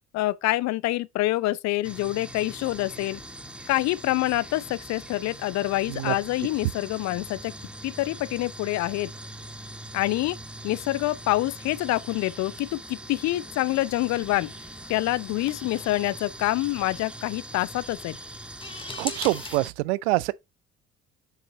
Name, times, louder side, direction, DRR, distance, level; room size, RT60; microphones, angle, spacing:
voice 1, 0.1-3.2 3.7-7.5 7.8-9.1 9.9-10.4 10.6-14.5 14.9-18.2, left 17 dB, 50° left, 0.6 m, -26 dB
sound 1, 1.8-19.7, right 1 dB, 5° right, 1.4 m, -42 dB
sound 2, 13.7-19.6, left 2 dB, 15° left, 1.8 m, -42 dB
voice 2, 19.0-20.3, right 20 dB, 65° right, 0.5 m, -25 dB
7.4 x 5.6 x 3.8 m
figure-of-eight pair, 50°, 35 cm